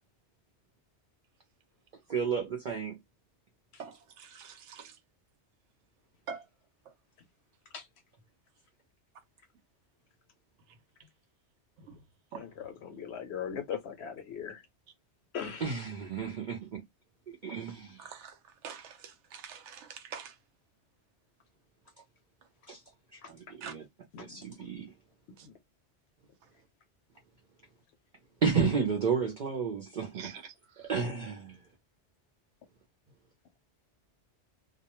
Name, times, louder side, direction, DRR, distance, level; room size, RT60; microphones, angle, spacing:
voice 1, 2.1-2.9 15.6-16.8 17.4-18.0 22.7-22.8 23.3-23.8 24.3-24.9 28.4-30.3 30.9-31.6, right 6 dB, 50° right, 0.6 m, -31 dB
voice 2, 3.8-5.0 6.3-6.5 6.8-6.9 10.7-10.8 11.8-12.0 12.3-12.7 18.0-20.4 23.6-23.7 25.4-25.5 26.4-26.5 30.1-30.9, right 6 dB, 90° right, 0.9 m, -46 dB
voice 3, 12.4-14.6 15.3-15.7 23.2-23.3 24.1-24.4 25.5-25.6, left 8 dB, 70° left, 0.8 m, -39 dB
2.1 x 2.1 x 3.0 m
omnidirectional pair, 1.2 m